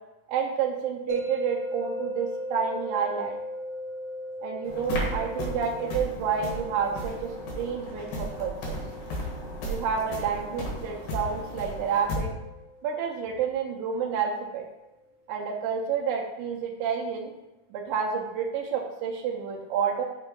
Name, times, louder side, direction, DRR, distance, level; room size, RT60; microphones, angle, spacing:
voice 1, 0.3-3.4 4.4-8.8 9.6-12.3 12.8-14.7 15.3-17.3 17.7-20.0, right 7 dB, 80° right, -1 dB, 2.1 m, -29 dB
sound 1, 1.1-14.2, left 1 dB, 35° left, 2.2 m, -39 dB
sound 2, 4.6-12.2, equal, 65° left, 3.0 m, -35 dB
6.0 x 4.4 x 3.8 m, 1.0 s
omnidirectional pair, 4.7 m